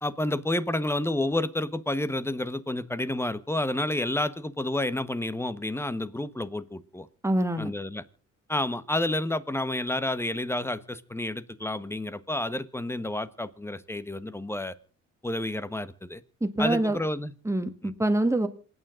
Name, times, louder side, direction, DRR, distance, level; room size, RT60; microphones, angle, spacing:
voice 1, 0.0-7.1 7.6-8.0 8.5-14.7 15.2-16.2 16.6-17.3 17.8-17.9, left 1 dB, 10° left, 15 dB, 1.2 m, -30 dB
voice 2, 7.2-7.7 16.4-17.0 17.5-18.5, right 1 dB, 10° right, 8 dB, 1.9 m, -25 dB
27.0 x 9.5 x 3.8 m, 0.41 s
cardioid pair, 90°, 30 cm